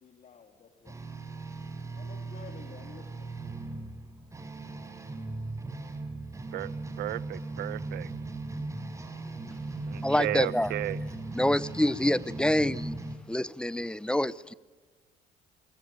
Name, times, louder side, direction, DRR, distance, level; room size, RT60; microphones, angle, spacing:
voice 1, 0.0-1.0 1.9-3.3, left 6 dB, 45° left, 3.3 m, -51 dB
sound 1, 0.8-13.2, right 2 dB, 20° right, 4.7 m, -38 dB
voice 2, 7.0-8.1 9.9-11.0, right 14 dB, 75° right, 0.9 m, -34 dB
voice 3, 10.0-10.7 11.3-13.0 13.3-14.5, left 1 dB, 5° left, 0.8 m, -26 dB
26.5 x 22.5 x 9.2 m
cardioid pair, 110°, 17 cm